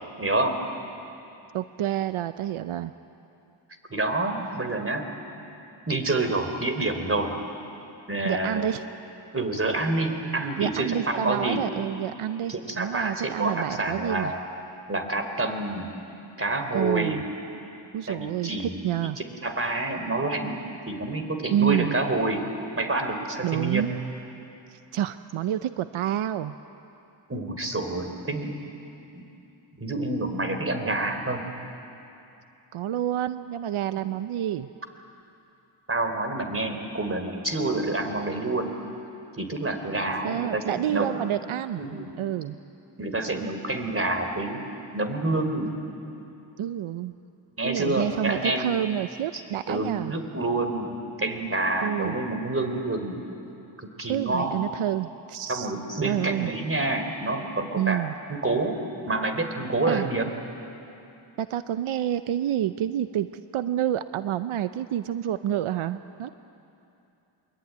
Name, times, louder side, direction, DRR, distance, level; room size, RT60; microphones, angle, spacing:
voice 1, 0.2-0.6 3.9-5.1 5.9-7.4 8.1-8.7 9.3-11.7 12.5-14.4 14.9-15.9 16.4-17.2 18.1-18.7 19.2-20.6 20.9-22.5 22.8-23.9 27.3-28.5 29.2-29.3 29.8-31.5 35.9-38.8 39.4-41.3 41.8-42.2 43.0-45.7 47.6-48.8 49.7-53.2 53.8-54.6 55.4-58.0 58.3-58.8 59.1-60.2, right 2 dB, 25° right, 6 dB, 3.5 m, -28 dB
voice 2, 1.5-2.9 8.2-8.8 10.6-14.3 16.7-17.2 17.9-19.2 21.5-21.9 23.4-23.9 24.7-26.5 32.7-34.7 40.2-42.6 46.6-47.1 47.6-50.1 51.8-52.2 54.1-55.7 56.0-56.5 57.8-58.1 59.9-60.1 61.4-66.3, right 11 dB, 85° right, 12 dB, 0.7 m, -28 dB
24.5 x 22.5 x 9.4 m, 2.8 s
cardioid pair, 80°, 49 cm